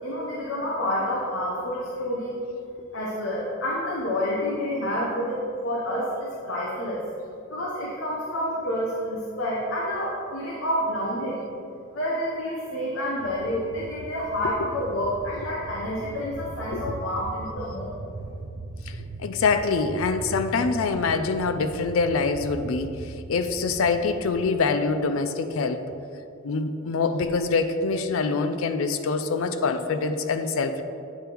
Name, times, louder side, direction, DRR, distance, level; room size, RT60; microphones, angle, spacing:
voice 1, 0.0-2.4 2.9-7.1 7.5-11.4 11.9-17.9, equal, 65° left, -5 dB, 0.9 m, -29 dB
sound 1, 13.2-24.6, right 2 dB, 70° right, 0.5 m, -39 dB
voice 2, 18.9-25.8 26.4-30.8, left 4 dB, 90° left, 9 dB, 0.4 m, -25 dB
8.7 x 3.4 x 4.5 m, 2.6 s
head